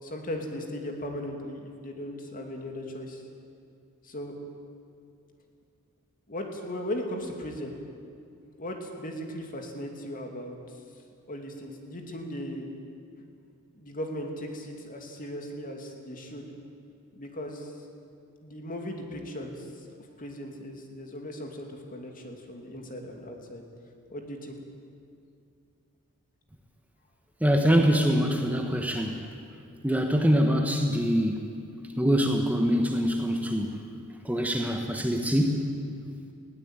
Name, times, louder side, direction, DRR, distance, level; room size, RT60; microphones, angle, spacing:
voice 1, 0.0-3.2 4.0-4.4 6.3-7.7 8.6-10.6 11.3-12.7 13.7-16.5 17.1-17.7 18.4-19.9 20.2-23.6 24.1-24.5, equal, 40° left, 3 dB, 2.7 m, -37 dB
voice 2, 27.4-29.2 29.8-31.4 32.0-33.8 34.2-35.6, equal, 5° right, 3 dB, 1.2 m, -24 dB
20.0 x 16.5 x 9.0 m, 2.4 s
head